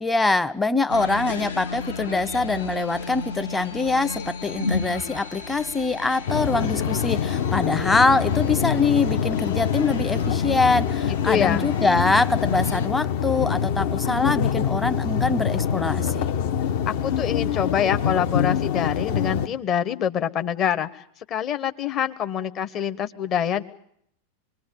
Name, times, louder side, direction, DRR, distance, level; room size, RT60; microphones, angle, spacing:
voice 1, 0.0-16.3, left 3 dB, 10° left, 10 dB, 0.9 m, -24 dB
sound 1, 0.9-12.9, left 4 dB, 65° left, 1.5 m, -34 dB
sound 2, 6.3-19.5, left 7 dB, 50° left, 1.0 m, -25 dB
voice 2, 11.3-11.7 16.9-21.0 21.3-23.6, left 9 dB, 35° left, 9 dB, 1.3 m, -25 dB
25.0 x 21.5 x 7.8 m, 0.69 s
figure-of-eight pair, 90°, 0 cm